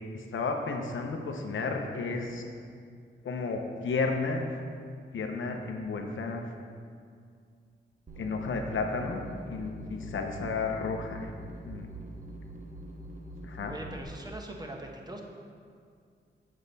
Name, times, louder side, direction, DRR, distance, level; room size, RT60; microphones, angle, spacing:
voice 1, 0.1-2.4 3.2-4.5 5.1-6.5 8.2-9.2 9.5-11.3 11.6-11.9 13.4-13.8, left 4 dB, 85° left, 3 dB, 0.8 m, -32 dB
sound 1, 8.1-14.0, right 1 dB, 40° right, 0.8 m, -44 dB
voice 2, 13.7-15.2, right 1 dB, 20° right, 1 dB, 1.2 m, -41 dB
8.2 x 6.5 x 4.1 m, 2.2 s
cardioid pair, 70°, 20 cm